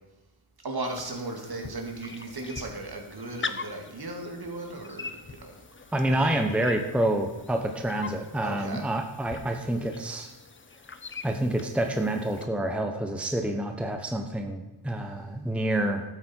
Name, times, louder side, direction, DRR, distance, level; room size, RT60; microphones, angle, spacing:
voice 1, 0.6-5.6 6.1-6.3 8.4-8.9, right 2 dB, 50° right, 2 dB, 2.2 m, -36 dB
sound 1, 0.8-12.5, left 4 dB, 25° left, 0.6 m, -42 dB
voice 2, 5.9-10.3 11.2-16.0, right 1 dB, ahead, 4 dB, 0.8 m, -28 dB
12.5 x 8.4 x 4.4 m, 1.1 s
wide cardioid pair, 105°, 48 cm